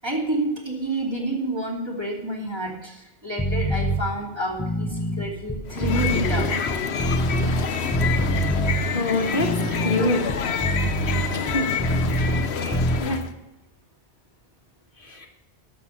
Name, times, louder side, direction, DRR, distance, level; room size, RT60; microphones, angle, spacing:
voice 1, 0.0-6.5, right 1 dB, 25° right, -2 dB, 2.8 m, -29 dB
sound 1, 3.4-4.0 4.5-7.7 7.9-8.8 9.3-12.5 12.7-13.0, right 1 dB, 10° left, 1.2 m, -25 dB
sound 2, 5.7-13.3, left 6 dB, 80° left, 1.1 m, -27 dB
voice 2, 8.9-9.6 9.8-10.3 11.3-11.7 12.3-12.4 13.0-13.2 15.0-15.3, left 2 dB, 55° left, 4 dB, 1.7 m, -25 dB
12.0 x 7.0 x 7.2 m, 0.99 s
omnidirectional pair, 1.1 m